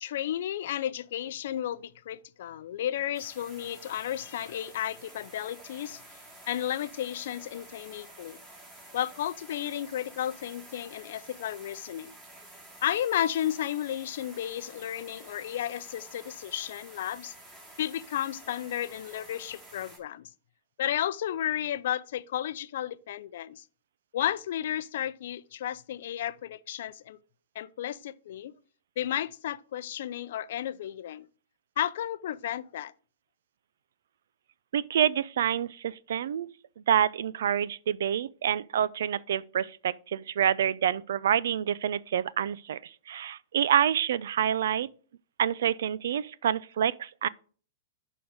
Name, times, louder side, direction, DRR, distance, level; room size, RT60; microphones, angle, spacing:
voice 1, 0.0-6.0 6.5-8.4 8.9-12.1 12.8-17.3 17.8-20.3 20.8-23.6 24.1-27.2 27.6-28.5 29.0-31.3 31.8-32.9, left 11 dB, 65° left, 0.5 m, -33 dB
sound 1, 3.1-20.0, right 1 dB, 15° right, 3.2 m, -50 dB
voice 2, 34.7-36.5 36.9-44.9 45.4-47.3, right 9 dB, 75° right, 0.4 m, -27 dB
11.0 x 3.9 x 4.7 m
hypercardioid pair, 140°, 0 cm